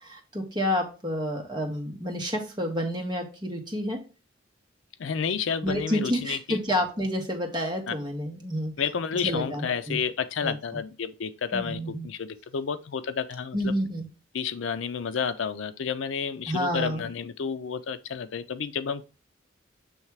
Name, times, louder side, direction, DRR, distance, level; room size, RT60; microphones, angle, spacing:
voice 1, 0.0-4.0 5.6-8.7 9.2-10.0 10.4-10.5 11.5-12.0 13.5-14.1 16.5-17.1, equal, 20° right, 1.3 m, -29 dB
voice 2, 5.0-6.6 7.9-8.0 8.8-13.7 14.3-19.0, left 6 dB, 70° left, 0.5 m, -31 dB
7.1 x 3.2 x 4.6 m
head